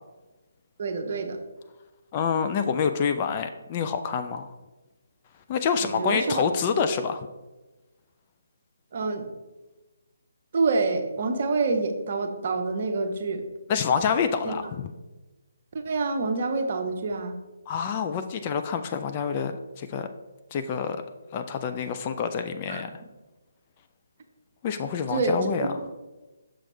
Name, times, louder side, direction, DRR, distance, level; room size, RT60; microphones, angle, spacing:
voice 1, 0.8-1.4 5.8-6.5 8.9-9.3 10.5-13.4 14.4-14.7 15.7-17.4 22.7-22.8 25.1-25.7, right 3 dB, 45° right, 5 dB, 0.9 m, -27 dB
voice 2, 2.1-4.5 5.5-7.3 13.7-14.9 17.7-20.1 20.5-21.0 21.3-23.0 24.6-25.7, left 6 dB, 30° left, 7 dB, 0.4 m, -27 dB
6.2 x 6.2 x 3.3 m, 1.1 s
figure-of-eight pair, 145°, 0 cm